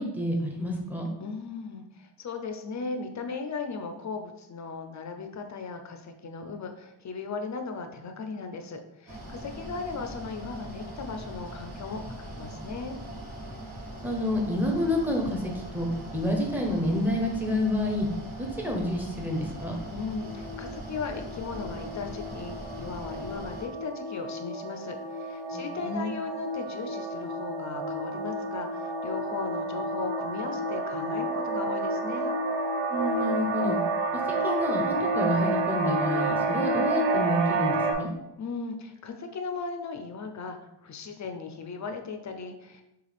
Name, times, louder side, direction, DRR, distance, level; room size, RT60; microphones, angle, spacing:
voice 1, 0.0-1.1 9.2-9.4 14.0-18.1 18.4-19.8 25.5-26.1 32.9-33.8 34.1-38.1, left 1 dB, 5° right, -1 dB, 0.8 m, -29 dB
voice 2, 1.2-13.0 19.9-32.3 38.4-42.8, left 4 dB, 40° left, 6 dB, 0.5 m, -37 dB
Mechanical fan, 9.1-23.7, right 1 dB, 60° right, 1.4 m, -41 dB
sound 1, 20.2-37.9, right 2 dB, 85° right, 0.7 m, -30 dB
6.2 x 2.4 x 3.4 m, 0.89 s
wide cardioid pair, 145°, 44 cm